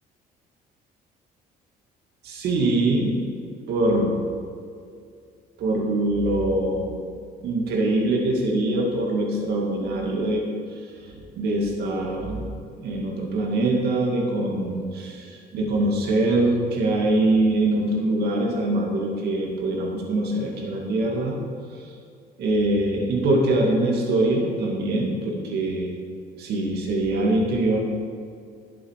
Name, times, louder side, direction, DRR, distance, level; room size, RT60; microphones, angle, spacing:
voice 1, 2.2-3.2 3.7-4.2 5.6-7.0 7.4-10.4 11.1-12.5 12.8-21.4 22.4-25.9 26.4-27.8, right 2 dB, 70° right, 0 dB, 2.2 m, -23 dB
11.5 x 7.7 x 4.8 m, 2.3 s
cardioid pair, 110°, 17 cm